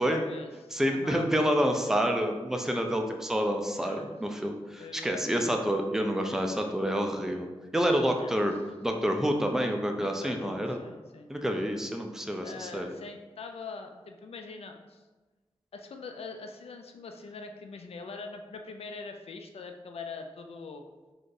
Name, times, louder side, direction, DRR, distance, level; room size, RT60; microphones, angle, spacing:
voice 1, 0.0-1.3 3.8-4.1 4.8-5.5 8.2-8.3 10.0-11.3 12.4-15.0 15.7-20.8, left 4 dB, 70° left, 5 dB, 0.4 m, -43 dB
voice 2, 0.7-7.5 7.7-8.5 8.8-10.8 11.3-12.9, equal, 5° right, 3 dB, 0.3 m, -28 dB
2.6 x 2.4 x 3.8 m, 1.2 s
wide cardioid pair, 120°, 11 cm